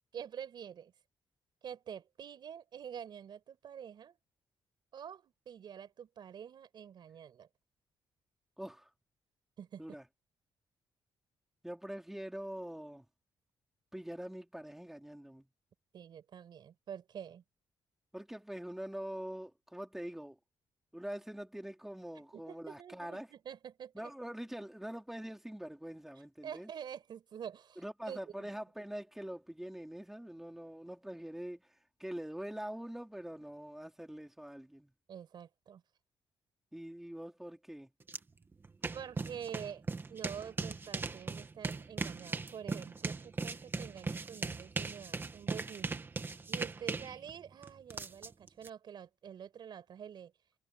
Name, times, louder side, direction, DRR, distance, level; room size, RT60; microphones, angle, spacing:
voice 1, 0.1-0.9 1.6-4.2 4.9-7.5 9.6-10.0 15.9-17.4 22.3-24.1 26.4-28.5 35.1-35.8 38.9-39.8 40.1-46.0 46.5-50.3, right 8 dB, 55° right, 5.0 m, -47 dB
voice 2, 8.6-8.9 9.8-10.0 11.6-13.1 13.9-15.5 18.1-20.4 20.9-23.3 23.9-26.7 27.8-31.7 32.0-34.9 36.7-37.9, right 1 dB, 5° right, 4.0 m, -44 dB
sound 1, 38.1-38.2 38.5-48.7, right 4 dB, 25° right, 1.5 m, -39 dB
cardioid pair, 140°, 9 cm